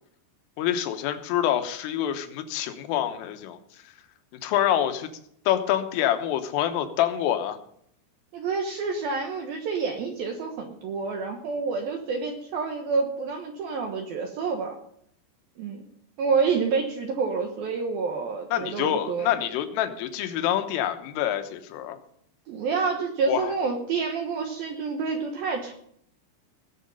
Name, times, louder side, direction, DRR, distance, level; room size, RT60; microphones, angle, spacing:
voice 1, 0.6-3.6 4.4-5.1 5.5-7.6 18.5-22.0 23.3-23.5, left 11 dB, 85° left, 8 dB, 3.7 m, -26 dB
voice 2, 8.3-14.8 15.6-15.9 16.2-19.3 22.5-25.7, right 5 dB, 70° right, 3 dB, 2.3 m, -28 dB
20.0 x 7.3 x 5.4 m, 0.68 s
omnidirectional pair, 5.7 m